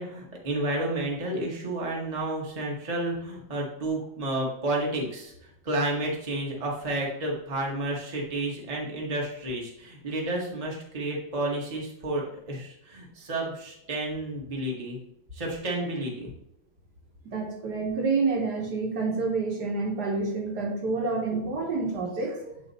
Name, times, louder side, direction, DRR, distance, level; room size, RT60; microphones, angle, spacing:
voice 1, 0.0-15.0 15.3-16.3, right 1 dB, 25° right, -2 dB, 1.0 m, -31 dB
voice 2, 17.2-22.6, right 3 dB, 60° right, 0 dB, 1.5 m, -28 dB
8.2 x 3.1 x 4.0 m, 0.77 s
omnidirectional pair, 2.1 m